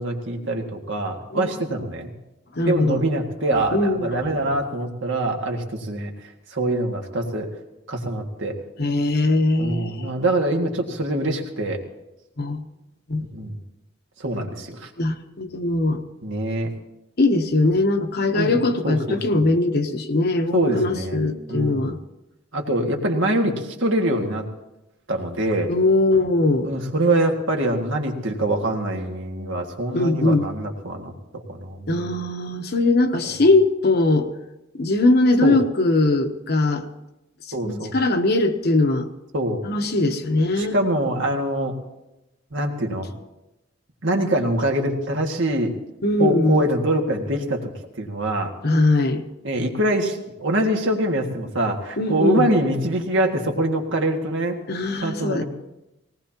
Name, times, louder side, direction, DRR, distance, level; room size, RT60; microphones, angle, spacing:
voice 1, 0.0-2.1 2.6-6.1 6.5-7.5 7.9-8.5 9.6-11.8 13.3-13.6 14.2-14.9 16.2-16.7 18.3-18.6 18.8-19.4 20.5-21.2 21.5-21.9 22.5-24.5 25.1-25.7 26.6-32.1 33.3-33.4 35.4-35.6 37.5-38.0 39.3-39.6 40.6-41.8 42.5-43.1 44.0-45.7 46.2-47.7 48.0-48.5 49.4-54.6 55.0-55.4, right 1 dB, 75° right, 2 dB, 1.9 m, -24 dB
voice 2, 2.6-3.0 3.7-4.3 8.8-10.1 12.4-12.6 13.1-13.2 15.0-16.0 17.2-22.0 25.7-26.7 29.9-30.5 31.9-34.3 34.8-36.9 37.6-39.1 39.6-40.8 46.0-46.6 48.6-49.2 52.0-52.5 54.7-55.4, left 2 dB, 55° left, 6 dB, 1.0 m, -20 dB
19.5 x 18.5 x 2.9 m, 0.94 s
head